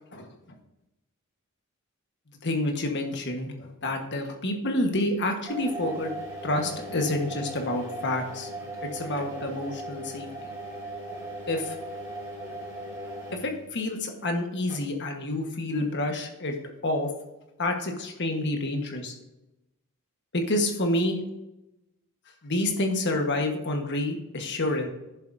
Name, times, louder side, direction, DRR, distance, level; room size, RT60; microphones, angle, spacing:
voice 1, 2.4-6.1 6.4-8.5 8.8-10.3 11.5-11.8 13.4-16.5 16.8-17.1 17.6-19.1 20.3-21.2 22.4-24.9, left 1 dB, 55° left, 4 dB, 1.4 m, -28 dB
sound 1, 5.4-13.7 14.7-14.8, right 1 dB, 15° right, 2.6 m, -38 dB
10.5 x 7.3 x 2.7 m, 0.94 s
head